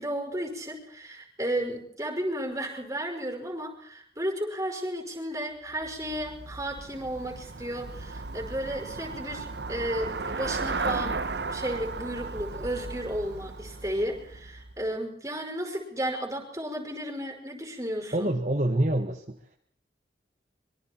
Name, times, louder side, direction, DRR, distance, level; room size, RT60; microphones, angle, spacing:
voice 1, 0.0-18.3, right 1 dB, 15° right, 2 dB, 5.5 m, -33 dB
Traffic noise roadway noise / Bicycle, 5.7-14.9, right 3 dB, 75° right, 1.1 m, -35 dB
voice 2, 18.1-19.4, right 1 dB, 45° right, 2 dB, 1.6 m, -26 dB
25.5 x 23.5 x 4.5 m, 0.63 s
head